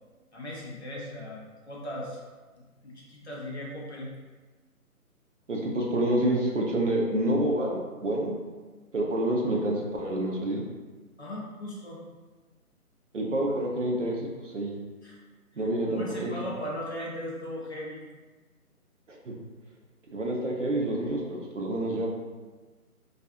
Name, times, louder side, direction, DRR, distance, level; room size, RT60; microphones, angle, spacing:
voice 1, 0.3-2.2 2.8-4.1 11.2-12.0 15.0-15.2 15.9-18.0, equal, 50° left, -4 dB, 0.6 m, -38 dB
voice 2, 5.5-8.4 8.9-10.6 13.1-14.8 15.6-16.3 19.1-19.3 20.1-22.1, right 1 dB, 55° right, -1 dB, 0.5 m, -28 dB
2.4 x 2.3 x 2.6 m, 1.3 s
hypercardioid pair, 170°, 45 cm